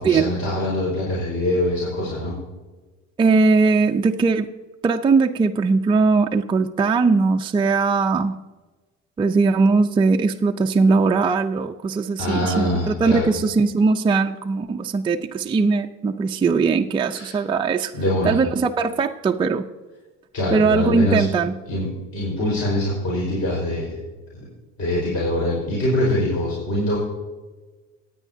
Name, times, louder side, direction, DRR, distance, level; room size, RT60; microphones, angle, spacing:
voice 1, 0.0-2.3 12.2-13.3 17.1-17.4 17.9-18.4 20.3-21.2 21.7-24.0 24.3-24.5 24.8-27.0, left 1 dB, 50° left, -5 dB, 4.7 m, -23 dB
voice 2, 3.2-4.5 4.8-8.4 9.2-17.9 18.2-19.7 20.5-21.5, right 4 dB, 15° right, 3 dB, 0.4 m, -20 dB
25.0 x 9.2 x 2.7 m, 1.2 s
cardioid pair, 130°, 32 cm